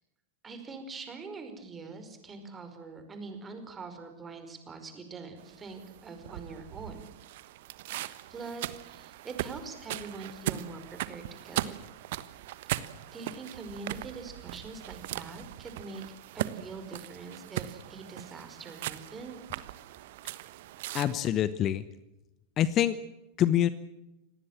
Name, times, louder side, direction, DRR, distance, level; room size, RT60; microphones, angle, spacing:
voice 1, 0.4-7.1 8.3-11.8 13.1-16.0 16.3-19.4, right 4 dB, 20° right, 7 dB, 5.0 m, -43 dB
sound 1, 5.4-21.1, right 14 dB, 50° right, 1.2 m, -39 dB
voice 2, 20.9-21.8 22.6-23.0 23.4-23.7, left 11 dB, 30° left, 16 dB, 1.0 m, -25 dB
26.5 x 19.0 x 7.6 m, 0.98 s
figure-of-eight pair, 90°, 0 cm